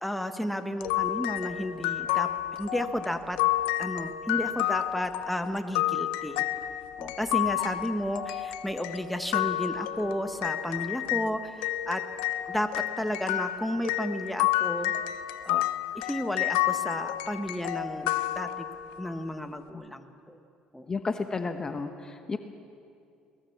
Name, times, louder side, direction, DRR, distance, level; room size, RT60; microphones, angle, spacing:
voice 1, 0.0-3.4 3.8-6.4 7.0-12.0 12.5-14.9 15.4-15.7 15.9-18.6 19.0-20.4 20.7-20.9, equal, 5° left, 7 dB, 1.5 m, -32 dB
sound 1, 0.8-11.3 11.6-19.0, left 14 dB, 85° left, 0.8 m, -30 dB
voice 2, 20.9-22.4, left 4 dB, 30° left, 7 dB, 1.2 m, -32 dB
23.0 x 19.5 x 7.3 m, 2.5 s
supercardioid pair, 95°, 2 cm